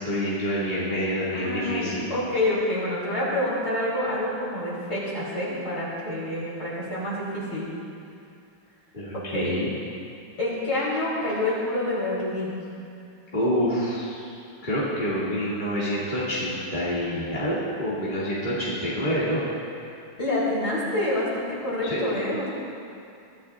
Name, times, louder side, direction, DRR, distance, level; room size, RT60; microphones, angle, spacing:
voice 1, 0.0-2.1 8.9-9.7 13.3-14.3 14.6-19.5 21.8-22.1, equal, 20° left, -10 dB, 2.3 m, -27 dB
voice 2, 1.3-7.7 9.1-9.6 10.4-12.6 20.2-22.5, left 1 dB, 50° left, -9 dB, 4.1 m, -27 dB
23.5 x 13.0 x 2.4 m, 2.5 s
omnidirectional pair, 2.4 m